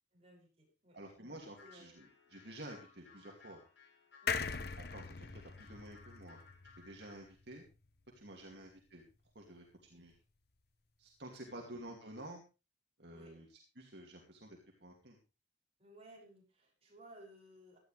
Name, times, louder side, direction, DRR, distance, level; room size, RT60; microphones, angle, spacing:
voice 1, 0.1-1.3 1.6-1.9 4.2-4.5 8.4-8.6 9.9-10.2 11.4-11.6 13.1-13.3 15.8-17.8, right 1 dB, 30° right, -1 dB, 6.9 m, -59 dB
voice 2, 0.9-3.6 4.8-6.4 6.8-7.6 8.1-9.0 9.3-10.1 11.0-12.4 13.0-15.2, right 1 dB, 60° right, 0 dB, 2.6 m, -51 dB
sound 1, 1.5-7.3, left 5 dB, 70° left, 4.3 m, -62 dB
sound 2, 4.3-7.7 8.1-8.2 8.4-8.5, left 5 dB, 55° left, 1.0 m, -41 dB
17.0 x 12.5 x 3.4 m, 0.31 s
head